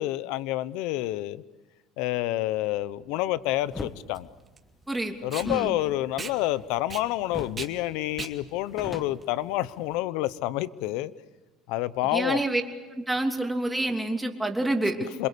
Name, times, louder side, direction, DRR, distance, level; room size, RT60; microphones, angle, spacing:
voice 1, 0.0-1.4 2.0-4.3 5.2-11.1 11.7-12.4 15.2-15.3, left 15 dB, 80° left, 17 dB, 0.8 m, -28 dB
Packing tape duct tape, 2.5-10.0, right 5 dB, 25° right, 2.3 m, -42 dB
sound 1, 3.7-4.0 5.4-6.9 7.3-7.7 8.0-8.1 8.4-10.0, left 3 dB, 20° left, 1.6 m, -40 dB
voice 2, 5.4-5.8 12.1-12.6 12.9-15.1, right 1 dB, 5° right, 2 dB, 3.0 m, -27 dB
27.0 x 22.0 x 8.4 m, 1.2 s
cardioid pair, 125°, 0 cm